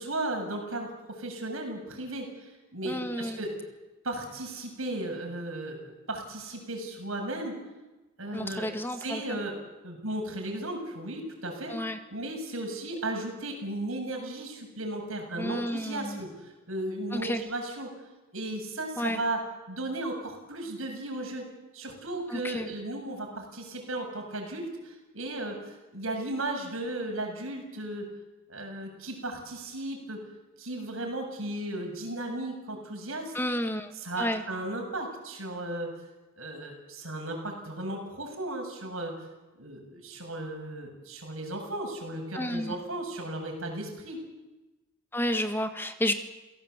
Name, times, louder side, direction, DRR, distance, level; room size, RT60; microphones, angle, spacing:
voice 1, 0.0-3.6 4.0-7.6 8.2-8.7 9.0-9.6 9.8-11.8 12.1-17.9 18.3-21.5 21.7-28.1 28.5-30.2 30.6-33.3 33.9-35.9 36.4-39.1 39.5-44.2, right 1 dB, 75° right, 2 dB, 7.5 m, -35 dB
voice 2, 2.8-3.4 8.3-9.4 11.7-12.0 15.4-16.2 17.1-17.4 19.0-19.2 22.3-22.7 33.3-33.9 34.2-34.4 42.3-42.7 45.1-46.1, left 1 dB, 10° left, 7 dB, 1.6 m, -31 dB
28.5 x 17.5 x 8.2 m, 1.1 s
head